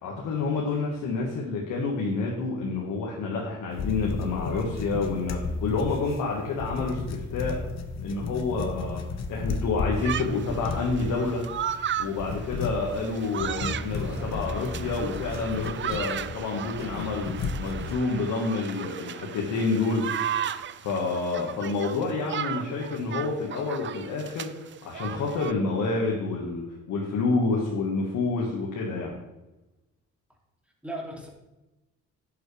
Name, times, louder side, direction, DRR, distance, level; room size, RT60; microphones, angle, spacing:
voice 1, 0.0-7.6 8.0-9.0 9.3-11.4 12.0-20.1 20.4-24.5 24.8-29.2, left 3 dB, 80° left, -2 dB, 1.8 m, -28 dB
sound 1, 3.7-18.0, left 4 dB, 60° left, 1.1 m, -34 dB
sound 2, 10.0-25.5, right 9 dB, 40° right, 0.5 m, -35 dB
voice 2, 13.9-14.3 22.8-22.9 30.8-31.3, right 1 dB, 5° right, -1 dB, 2.8 m, -38 dB
11.0 x 7.7 x 3.4 m, 1.0 s
cardioid pair, 90°, 30 cm